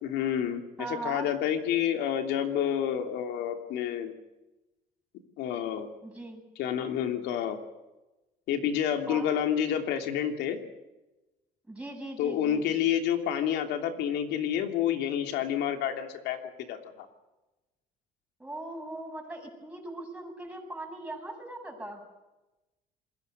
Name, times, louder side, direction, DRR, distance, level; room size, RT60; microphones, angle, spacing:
voice 1, 0.0-0.6 0.9-4.1 5.4-5.9 6.6-7.6 8.5-10.6 12.2-17.1, left 9 dB, 85° left, 5 dB, 3.0 m, -29 dB
voice 2, 0.8-1.3 6.0-6.4 9.1-9.4 11.7-12.8 18.4-22.0, right 2 dB, 5° right, 2 dB, 7.2 m, -40 dB
27.5 x 21.5 x 6.6 m, 1.0 s
cardioid pair, 110°, 17 cm